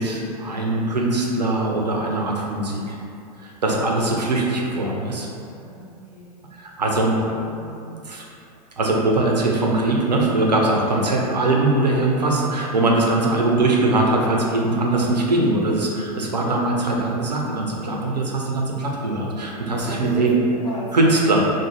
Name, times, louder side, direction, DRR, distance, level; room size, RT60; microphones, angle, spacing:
voice 1, 0.0-3.0 3.4-5.3 6.5-8.2 8.8-20.4 20.9-21.4, right 2 dB, 90° right, -1 dB, 0.5 m, -21 dB
voice 2, 5.4-6.3 10.9-11.0 19.7-21.0 21.4-21.5, equal, 20° left, -13 dB, 0.8 m, -36 dB
2.5 x 2.0 x 3.1 m, 2.5 s
figure-of-eight pair, 100°, 21 cm